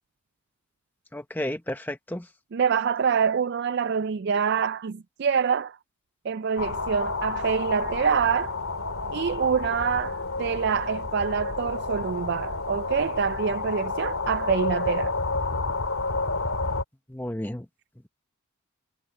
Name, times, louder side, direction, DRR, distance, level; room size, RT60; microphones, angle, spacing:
voice 1, 1.1-2.2 17.1-17.6, left 1 dB, 10° left, 0.7 m, -32 dB
voice 2, 2.5-5.8 6.2-8.6 9.1-15.1, right 6 dB, 50° right, 0.3 m, -26 dB
sound 1, 6.6-16.8, left 3 dB, 80° left, 2.4 m, -30 dB
head